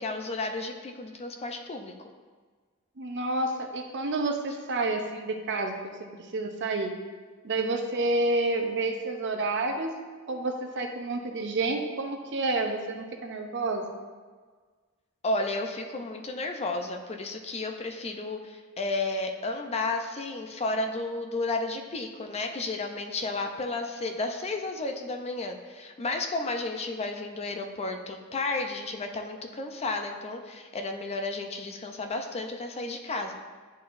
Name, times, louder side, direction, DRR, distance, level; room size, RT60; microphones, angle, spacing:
voice 1, 0.0-1.9 15.2-33.3, left 2 dB, 30° left, 4 dB, 0.5 m, -32 dB
voice 2, 3.0-5.9 6.3-6.9 7.4-10.0 10.3-13.8, right 2 dB, 55° right, 4 dB, 0.7 m, -29 dB
10.5 x 4.1 x 2.5 m, 1.5 s
head